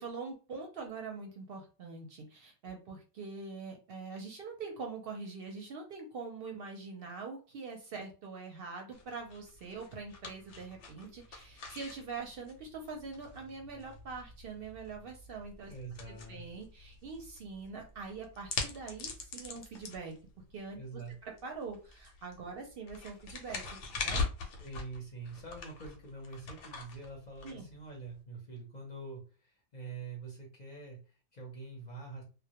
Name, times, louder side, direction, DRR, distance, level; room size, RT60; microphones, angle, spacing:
voice 1, 0.0-15.7 16.1-20.1 20.5-20.8 21.2-23.6 24.0-24.2 27.4-27.7, right 4 dB, 60° right, 2 dB, 0.7 m, -43 dB
sound 1, 8.9-28.2, left 4 dB, 80° left, 0.9 m, -43 dB
voice 2, 15.7-16.5 20.7-21.1 24.6-32.2, right 3 dB, 45° left, -2 dB, 0.7 m, -45 dB
2.1 x 2.1 x 2.8 m, 0.35 s
omnidirectional pair, 1.2 m